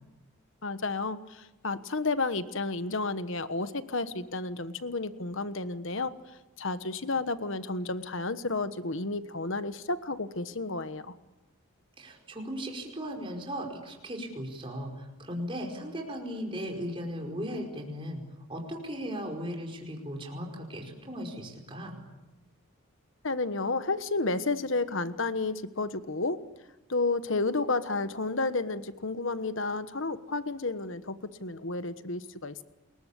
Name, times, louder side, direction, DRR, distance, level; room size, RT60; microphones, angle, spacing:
voice 1, 0.6-6.1 6.6-11.1 23.2-26.4 26.9-32.6, left 3 dB, 60° left, 12 dB, 1.3 m, -31 dB
voice 2, 12.0-18.2 18.5-22.0, equal, 25° right, 1 dB, 4.9 m, -37 dB
28.5 x 21.5 x 8.4 m, 1.1 s
head